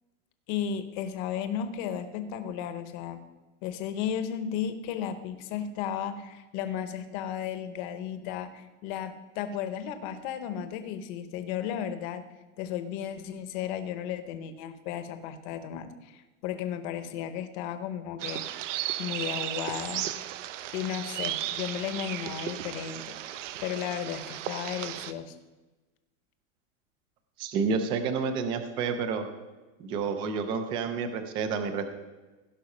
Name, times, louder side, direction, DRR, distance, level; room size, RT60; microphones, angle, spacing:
voice 1, 0.5-3.2 3.6-12.2 12.6-18.6 19.0-20.1 20.7-25.3, left 9 dB, 35° left, 10 dB, 0.9 m, -34 dB
sound 1, 18.2-25.1, right 12 dB, 70° right, 0.8 m, -35 dB
voice 2, 27.4-29.2 29.8-31.8, right 5 dB, 15° right, 8 dB, 0.4 m, -29 dB
16.5 x 5.6 x 5.4 m, 1.2 s
supercardioid pair, 170°, 38 cm